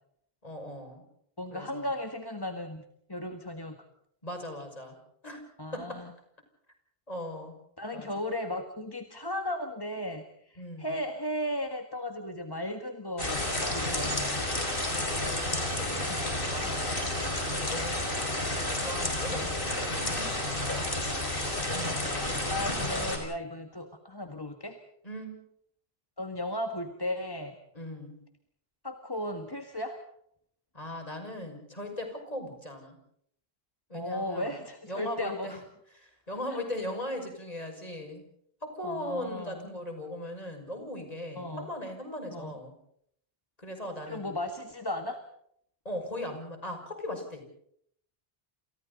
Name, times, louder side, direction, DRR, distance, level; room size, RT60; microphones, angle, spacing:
voice 1, 0.4-1.0 1.5-1.9 4.2-4.9 5.2-5.4 5.7-6.0 7.1-7.6 7.9-8.1 10.6-10.9 13.8-14.2 14.8-17.0 17.5-18.3 18.6-20.3 21.7-22.1 25.0-25.4 27.7-28.2 30.7-33.0 33.9-34.6 34.9-35.6 35.9-38.2 38.6-42.7 43.6-44.3 45.8-47.4, left 1 dB, 40° left, 3 dB, 6.3 m, -39 dB
voice 2, 1.4-2.8 3.1-3.8 5.6-6.1 7.8-14.4 15.9-16.2 16.6-16.8 17.2-17.4 17.8-18.0 22.5-24.8 26.2-27.6 28.8-30.0 33.9-35.6 36.5-36.6 38.8-39.7 41.4-41.7 42.3-42.6 44.1-45.2, left 1 dB, 20° left, 5 dB, 1.8 m, -36 dB
sound 1, 13.2-23.2, left 1 dB, 60° left, 5.5 m, -31 dB
29.0 x 28.5 x 4.1 m, 0.69 s
omnidirectional pair, 1.0 m